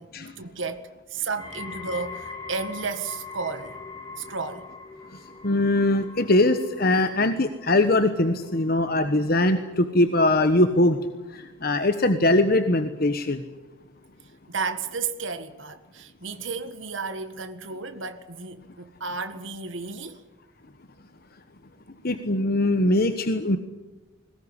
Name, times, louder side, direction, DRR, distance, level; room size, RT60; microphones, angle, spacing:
voice 1, 0.0-3.8 4.2-4.7 9.4-9.5 14.5-20.2, right 4 dB, 70° right, 1.7 m, -33 dB
sound 1, 1.4-12.5 12.8-13.3 14.0-14.1, left 4 dB, 20° left, 4.7 m, -43 dB
voice 2, 5.1-11.0 11.3-13.4 22.0-23.6, left 2 dB, 50° left, 1.2 m, -22 dB
21.5 x 19.5 x 9.9 m
head